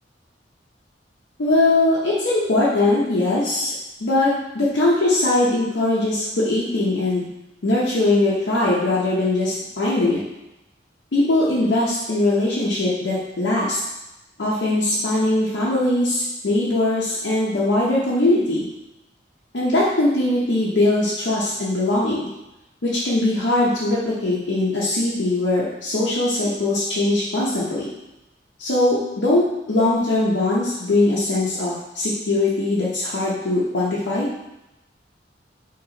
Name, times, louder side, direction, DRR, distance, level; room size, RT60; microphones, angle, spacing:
voice 1, 1.4-3.7 4.0-7.3 7.6-10.2 11.1-13.8 14.4-18.6 19.5-22.3 22.8-27.9 28.6-34.3, left 2 dB, 75° left, -8 dB, 0.7 m, -21 dB
4.1 x 3.0 x 2.9 m, 0.94 s
head